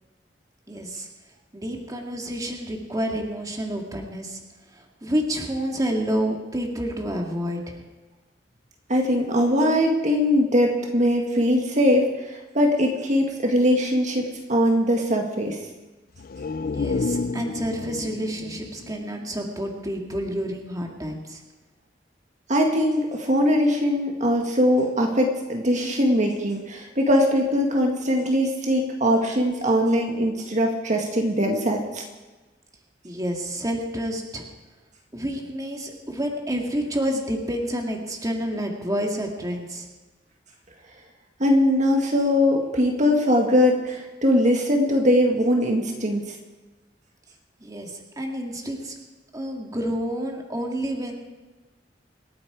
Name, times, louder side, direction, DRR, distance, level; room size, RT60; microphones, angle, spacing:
voice 1, 0.7-1.1 1.5-4.4 4.7-7.8 16.6-21.4 33.0-34.5 35.1-39.9 47.6-48.9 49.3-51.1, equal, 20° right, 1 dB, 1.9 m, -29 dB
voice 2, 8.9-12.1 12.3-15.6 22.5-32.0 41.4-46.3, equal, 40° right, 2 dB, 1.7 m, -21 dB
sound 1, 16.1-19.9 20.2-20.3, left 4 dB, 55° left, 0.5 m, -30 dB
26.5 x 8.8 x 4.8 m, 1.2 s
head